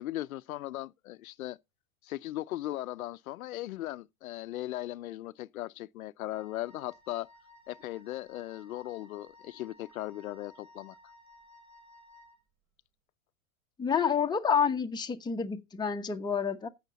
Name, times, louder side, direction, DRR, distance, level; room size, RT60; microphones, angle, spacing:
voice 1, 0.0-1.6 2.0-7.3 7.7-10.9, left 15 dB, 80° left, 0.7 m, -38 dB
Wind instrument woodwind instrument, 6.3-12.4, left 2 dB, 40° right, 6.0 m, -57 dB
voice 2, 13.8-16.7, left 7 dB, 10° left, 1.1 m, -29 dB
15.5 x 6.7 x 4.0 m
hypercardioid pair, 120°, 42 cm